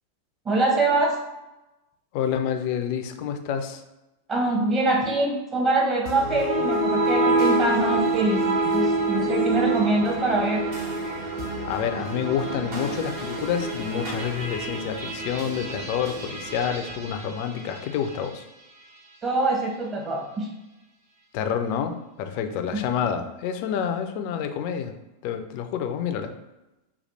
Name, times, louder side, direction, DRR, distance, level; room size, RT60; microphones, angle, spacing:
voice 1, 0.4-1.2 4.3-10.6 19.2-20.5, right 2 dB, 25° right, -1 dB, 1.0 m, -24 dB
voice 2, 2.1-3.8 11.7-18.4 21.3-24.9 25.2-26.3, left 8 dB, 45° left, 7 dB, 0.4 m, -28 dB
sound 1, 6.1-18.4, right 2 dB, 45° right, 0.7 m, -27 dB
3.3 x 2.3 x 4.1 m, 1.0 s
figure-of-eight pair, 90°, 0 cm